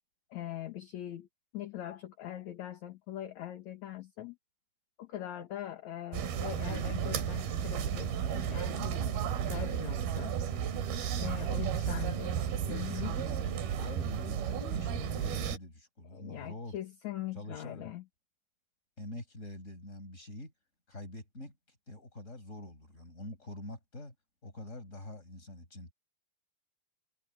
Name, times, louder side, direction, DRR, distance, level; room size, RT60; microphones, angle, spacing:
voice 1, 0.3-1.3 1.5-4.4 5.0-10.4 11.2-12.4 12.7-13.2 16.1-18.0, left 12 dB, 60° left, 2.5 m, -42 dB
sound 1, 6.1-15.6, right 8 dB, 85° right, 3.9 m, -33 dB
voice 2, 11.5-12.2 12.5-12.7 13.0-16.8 17.3-17.9 19.0-20.5 20.9-21.5 21.9-24.1 24.4-25.9, left 1 dB, 20° left, 5.7 m, -45 dB
omnidirectional pair, 4.3 m